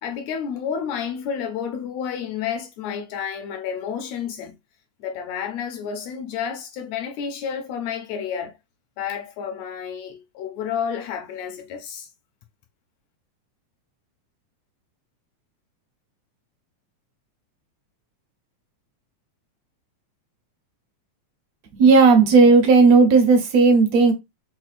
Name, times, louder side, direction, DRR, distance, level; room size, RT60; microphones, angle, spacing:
voice 1, 0.0-4.6 5.0-8.6 9.0-12.1, left 7 dB, 80° left, 1.5 m, -30 dB
voice 2, 21.7-24.1, right 4 dB, 70° right, 1.9 m, -14 dB
5.7 x 2.3 x 2.4 m
omnidirectional pair, 3.4 m